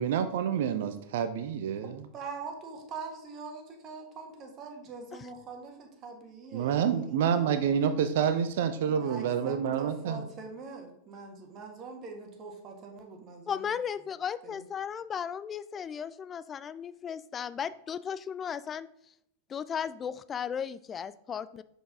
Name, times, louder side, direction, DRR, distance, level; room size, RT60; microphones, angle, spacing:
voice 1, 0.0-2.0 6.5-10.2, right 8 dB, 55° right, 10 dB, 0.6 m, -28 dB
voice 2, 1.8-8.1 8.9-13.7 14.4-14.7, right 4 dB, 35° right, 3 dB, 1.7 m, -43 dB
voice 3, 13.5-18.9 19.5-21.6, left 7 dB, 25° left, 15 dB, 0.4 m, -35 dB
6.9 x 6.3 x 3.7 m, 0.76 s
figure-of-eight pair, 90°, 0 cm